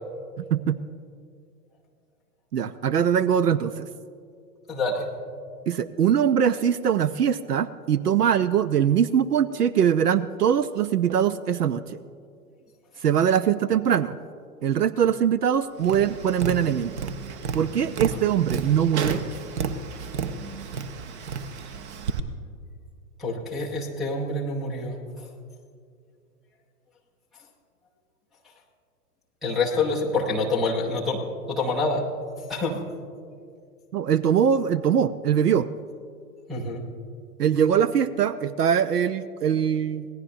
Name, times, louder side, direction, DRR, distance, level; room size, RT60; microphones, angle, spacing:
voice 1, 2.5-3.9 5.7-11.8 13.0-14.2 14.6-16.9 17.5-19.2 33.9-35.7 37.4-40.1, right 8 dB, 75° right, 17 dB, 0.6 m, -22 dB
voice 2, 4.7-5.1 23.2-25.0 29.4-31.2 31.5-32.0 32.5-32.8 36.5-36.8, left 3 dB, ahead, -5 dB, 0.4 m, -26 dB
Tap, 15.8-22.2, right 5 dB, 45° right, 1.0 m, -32 dB
26.0 x 18.0 x 2.6 m, 2.3 s
figure-of-eight pair, 105°, 47 cm